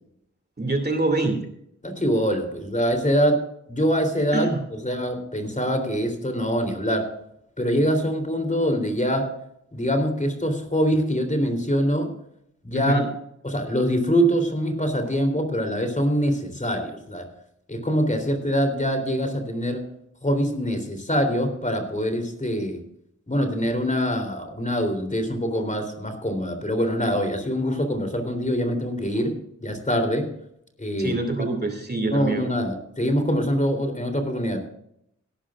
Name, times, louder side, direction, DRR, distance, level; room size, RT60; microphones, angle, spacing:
voice 1, 0.6-1.4 4.3-4.6 12.7-13.1 31.0-32.5, right 2 dB, 30° right, 5 dB, 2.6 m, -25 dB
voice 2, 1.8-3.4 3.7-4.5 4.8-7.1 7.6-9.3 9.7-12.1 12.6-13.1 13.4-17.3 17.7-19.8 20.2-22.8 23.3-29.3 29.6-30.3 30.8-31.2 32.1-34.6, equal, 25° left, 7 dB, 3.5 m, -24 dB
17.0 x 12.5 x 2.5 m, 0.73 s
cardioid pair, 55°, 31 cm